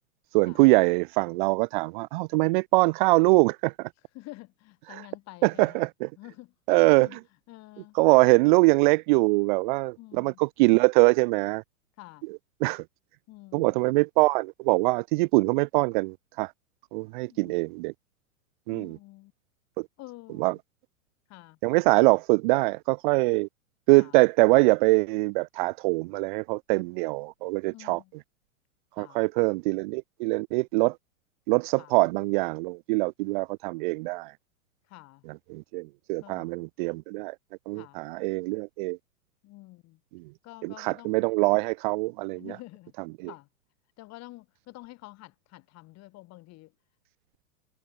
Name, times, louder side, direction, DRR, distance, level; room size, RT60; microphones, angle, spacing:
voice 1, 0.3-3.9 4.9-5.1 5.4-6.1 6.7-7.2 7.9-11.6 12.2-12.8 13.5-16.5 16.9-17.9 18.7-19.0 19.8-19.9 20.4-20.6 21.6-23.5 23.9-28.2 29.0-31.0 31.5-34.3 35.3-37.4 37.7-39.0 40.1-40.2 40.6-42.6 43.2-43.3, right 25 dB, 35° right, 0.6 m, -23 dB
voice 2, 4.1-5.9 6.2-7.2 7.5-8.0 10.0-10.4 12.0-12.2 13.3-13.8 17.2-17.6 18.7-19.3 20.0-20.6 21.3-21.6 24.0-24.2 27.7-28.1 29.0-29.3 31.8-31.9 34.9-35.2 36.2-36.5 37.8-38.0 39.4-40.0 40.4-41.2 42.4-42.9 43.3-43.5 44.0-46.7, left 19 dB, 35° left, 8.0 m, -48 dB
hypercardioid pair, 115°, 44 cm